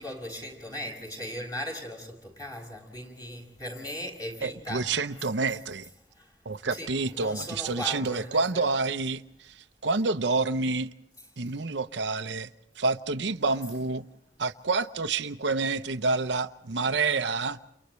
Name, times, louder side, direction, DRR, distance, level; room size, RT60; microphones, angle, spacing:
voice 1, 0.0-4.9 6.2-6.3 6.7-8.6, left 1 dB, 20° left, 5.8 m, -38 dB
voice 2, 4.4-5.9 6.4-10.9 11.4-12.5 12.8-14.0 14.4-17.6, right 3 dB, 80° right, 0.8 m, -28 dB
30.0 x 29.5 x 3.2 m
head